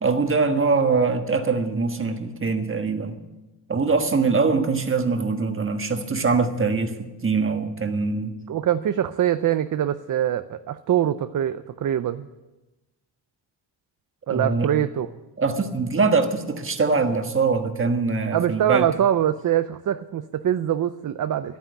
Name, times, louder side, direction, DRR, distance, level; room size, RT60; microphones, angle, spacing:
voice 1, 0.0-3.2 3.7-8.4 14.3-14.7 15.4-18.9, right 4 dB, 25° right, 5 dB, 1.4 m, -23 dB
voice 2, 8.5-12.3 14.3-15.1 18.3-21.6, right 10 dB, 45° right, 11 dB, 0.5 m, -23 dB
13.0 x 9.2 x 10.0 m, 1.1 s
wide cardioid pair, 150°, 46 cm